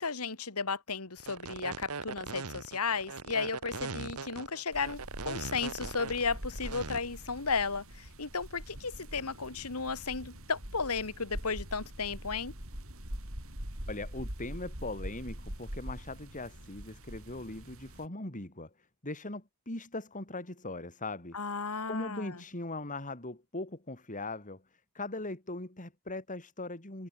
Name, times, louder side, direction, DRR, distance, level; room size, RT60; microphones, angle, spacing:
voice 1, 0.0-12.5 21.3-22.4, left 5 dB, 85° left, 2.2 m, -34 dB
sound 1, 1.2-7.0, right 4 dB, 85° right, 1.7 m, -40 dB
sound 2, 4.7-18.1, equal, 70° right, 7.7 m, -44 dB
voice 2, 13.9-18.7 19.0-24.6 24.9-27.1, left 2 dB, 35° left, 4.3 m, -40 dB
head